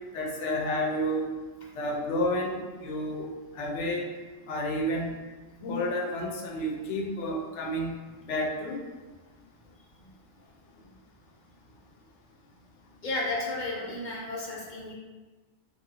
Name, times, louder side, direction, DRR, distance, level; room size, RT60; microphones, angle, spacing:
voice 1, 0.1-1.3 1.7-3.3 3.5-4.0 4.5-5.1 5.6-7.9 8.3-8.8, equal, 90° left, 1 dB, 1.0 m, -30 dB
voice 2, 13.0-14.9, left 2 dB, 50° left, -4 dB, 0.7 m, -33 dB
4.0 x 3.0 x 2.6 m, 1.3 s
omnidirectional pair, 1.2 m